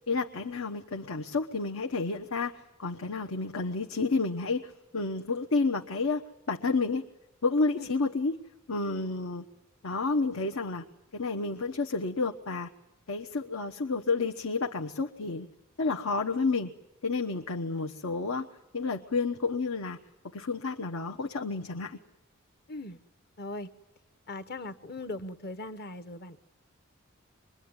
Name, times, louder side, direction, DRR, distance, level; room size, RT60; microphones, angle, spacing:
voice 1, 0.1-6.2 6.5-7.0 7.4-8.4 8.7-9.4 9.8-10.8 11.1-12.7 13.1-15.5 15.8-16.7 17.0-18.5 18.7-20.0 20.3-22.0, left 3 dB, 75° left, 3 dB, 1.1 m, -30 dB
voice 2, 22.7-23.0 23.4-23.7 24.3-26.5, left 2 dB, 45° left, 12 dB, 1.1 m, -39 dB
25.0 x 22.0 x 9.8 m, 0.93 s
head